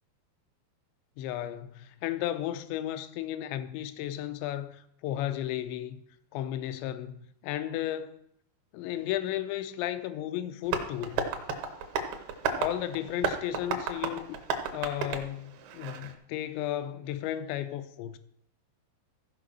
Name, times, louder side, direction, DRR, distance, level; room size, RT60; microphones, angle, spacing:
voice 1, 1.2-6.0 6.3-8.2 8.7-11.3 12.5-14.4 14.7-18.2, left 12 dB, 85° left, 2.9 m, -34 dB
Tap, 10.7-16.1, right 5 dB, 70° right, 2.7 m, -33 dB
15.0 x 5.0 x 6.2 m
omnidirectional pair, 5.2 m